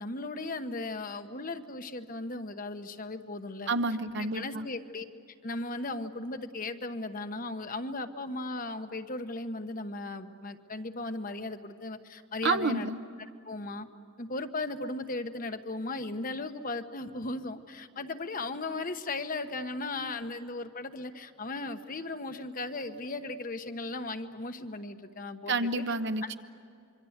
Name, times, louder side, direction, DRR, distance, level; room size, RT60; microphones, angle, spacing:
voice 1, 0.0-3.7 4.3-5.1 5.4-12.9 13.4-13.9 14.2-25.8 26.2-26.4, left 2 dB, 40° left, 8 dB, 1.1 m, -37 dB
voice 2, 3.7-4.7 12.4-13.0 25.5-26.4, right 3 dB, 55° right, 10 dB, 0.9 m, -29 dB
26.0 x 24.0 x 8.1 m, 2.4 s
head